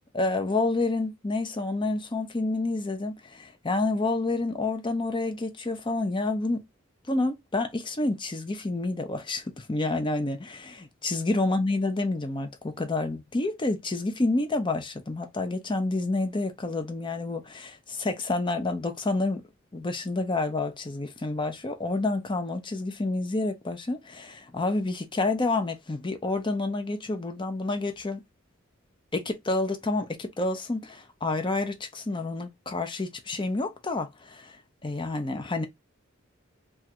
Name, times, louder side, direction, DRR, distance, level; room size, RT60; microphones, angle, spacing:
voice 1, 0.1-6.6 7.1-19.4 19.7-28.2 29.1-35.7, left 2 dB, 25° left, 0.6 m, -29 dB
3.2 x 2.4 x 2.8 m
head